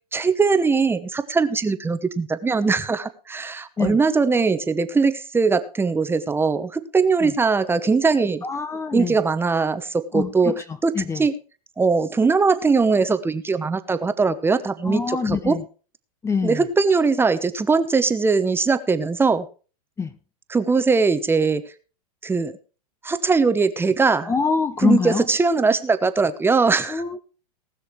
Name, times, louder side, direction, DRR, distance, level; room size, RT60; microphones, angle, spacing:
voice 1, 0.1-8.4 8.9-10.5 10.8-11.3 11.8-15.6 16.4-19.5 20.5-21.6 22.2-22.5 23.0-24.3 24.8-27.0, right 4 dB, 10° right, 1.0 m, -20 dB
voice 2, 8.4-9.2 10.1-11.3 14.8-15.6 16.2-16.6 20.0-20.1 24.2-25.3 26.9-27.2, left 5 dB, 15° left, 0.8 m, -25 dB
19.0 x 6.4 x 4.7 m
hypercardioid pair, 115°, 19 cm